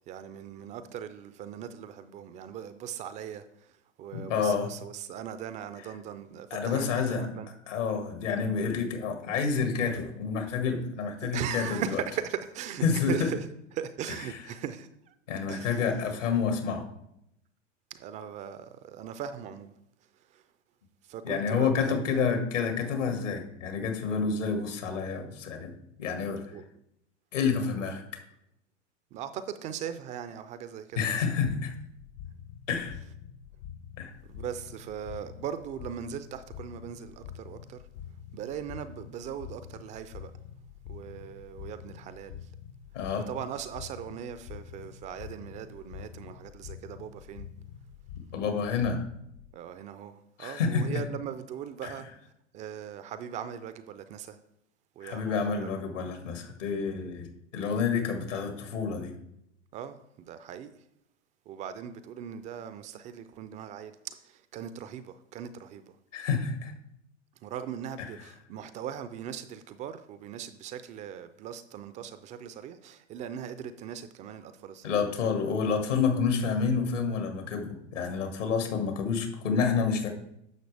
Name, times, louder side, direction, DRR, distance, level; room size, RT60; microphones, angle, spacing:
voice 1, 0.0-7.5 11.2-13.4 13.7-15.1 15.5-16.0 17.9-19.7 20.3-20.4 21.0-22.2 26.5-26.6 27.8-27.9 29.1-31.2 34.2-37.9 38.3-40.3 40.9-42.5 43.2-47.5 49.5-52.1 52.5-54.4 55.0-55.7 59.7-60.8 61.5-66.0 67.4-75.0, right 9 dB, 20° right, 0.3 m, -39 dB
voice 2, 4.1-4.7 6.5-7.4 7.7-11.8 12.8-13.3 15.3-16.9 21.2-26.4 27.3-28.0 31.0-31.7 32.7-33.0 34.0-34.1 42.9-43.3 48.3-49.0 50.4-51.0 51.8-51.9 55.0-57.3 57.5-59.1 66.1-66.7 68.0-68.1 74.8-80.1, left 5 dB, 80° left, 2.0 m, -29 dB
sound 1, 31.4-49.5, left 9 dB, 60° left, 0.8 m, -46 dB
10.5 x 6.5 x 3.3 m
hypercardioid pair, 105°, 37 cm